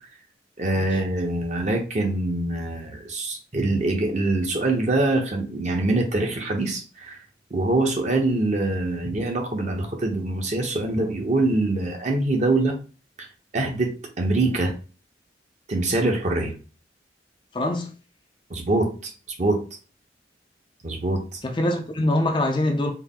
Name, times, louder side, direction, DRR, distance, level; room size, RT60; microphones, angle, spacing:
voice 1, 0.6-7.2 7.5-12.8 13.2-13.3 13.5-14.7 15.7-16.5 18.5-19.1 19.4-19.6 20.8-21.4, right 2 dB, 40° right, 0.9 m, -24 dB
voice 2, 17.5-17.9 21.4-22.9, left 1 dB, 25° left, 0.4 m, -23 dB
4.4 x 2.1 x 3.6 m
head